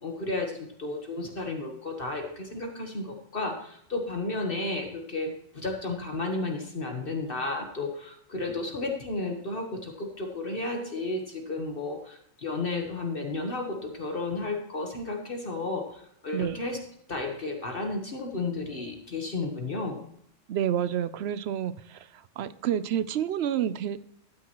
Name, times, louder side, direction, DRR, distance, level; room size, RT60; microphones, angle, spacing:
voice 1, 0.0-16.8 17.1-20.0, left 2 dB, 45° left, 3 dB, 1.4 m, -33 dB
voice 2, 20.5-22.1 22.4-24.0, right 10 dB, 65° right, 15 dB, 0.8 m, -29 dB
12.5 x 9.4 x 3.0 m, 0.72 s
omnidirectional pair, 1.3 m